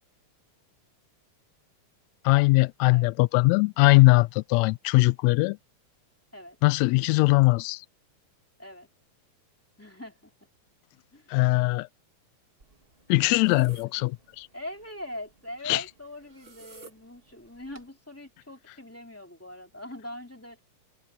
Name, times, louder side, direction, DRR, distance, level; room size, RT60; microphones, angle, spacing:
voice 1, 2.3-5.6 6.6-7.8 11.3-11.9 13.1-14.5 15.7-15.8, left 22 dB, 80° left, 1.7 m, -21 dB
voice 2, 9.8-10.3 11.1-11.3 13.8-14.1 14.5-20.6, left 1 dB, 5° left, 2.4 m, -42 dB
sound 1, 12.6-17.9, right 4 dB, 25° right, 1.7 m, -55 dB
omnidirectional pair, 3.3 m